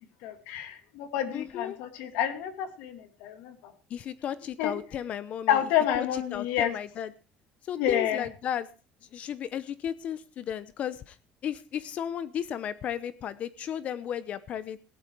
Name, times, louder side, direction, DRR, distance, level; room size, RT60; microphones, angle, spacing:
voice 1, 0.2-3.7 4.6-4.8 5.5-6.7 7.8-8.2, left 10 dB, 90° left, 8 dB, 2.4 m, -29 dB
voice 2, 1.3-1.8 3.9-5.6 6.0-7.1 7.6-8.7 9.1-11.2 11.4-14.9, left 9 dB, 45° left, 15 dB, 0.8 m, -34 dB
17.0 x 11.5 x 4.6 m, 0.35 s
cardioid pair, 135°, 3 cm